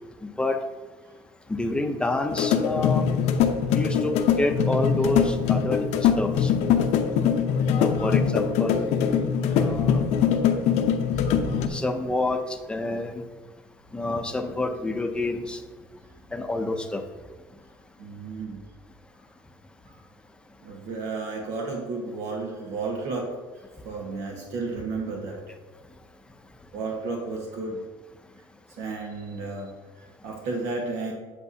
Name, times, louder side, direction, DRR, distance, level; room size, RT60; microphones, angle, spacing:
voice 1, 0.2-0.6 1.5-3.0 3.7-5.9 6.2-6.5 7.7-8.9 9.5-10.0 11.7-13.2 13.9-15.6 16.3-17.0, left 2 dB, 10° left, 6 dB, 0.6 m, -28 dB
sound 1, 2.3-11.7, left 7 dB, 80° left, 0.7 m, -22 dB
voice 2, 18.0-18.6 20.6-23.3 23.8-25.4 26.7-27.8 28.8-29.7 30.0-31.1, right 3 dB, 85° right, 0 dB, 1.4 m, -32 dB
8.4 x 7.9 x 2.8 m, 1.3 s
cardioid pair, 155°, 11 cm